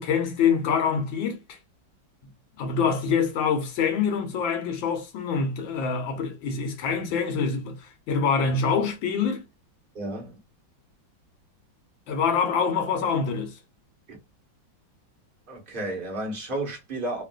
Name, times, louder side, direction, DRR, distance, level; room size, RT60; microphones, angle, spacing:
voice 1, 0.0-1.4 2.6-7.8 8.1-9.4 12.1-13.6, left 6 dB, 90° left, 1.6 m, -25 dB
voice 2, 9.9-10.3 14.1-14.2 15.5-17.2, right 2 dB, 35° right, 1.0 m, -32 dB
3.5 x 2.4 x 2.2 m
omnidirectional pair, 2.1 m